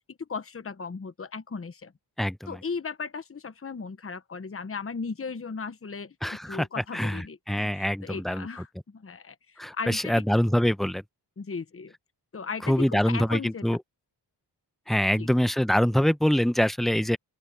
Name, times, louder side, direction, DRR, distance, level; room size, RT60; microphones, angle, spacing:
voice 1, 0.2-1.9 2.5-10.2 11.4-11.9 12.3-13.7 15.2-15.3, left 5 dB, 35° left, 1.1 m, -36 dB
voice 2, 2.2-2.6 6.2-6.7 6.9-8.5 9.6-11.0 12.7-13.8 14.9-17.2, equal, ahead, 0.8 m, -24 dB
open air
cardioid pair, 70°, 41 cm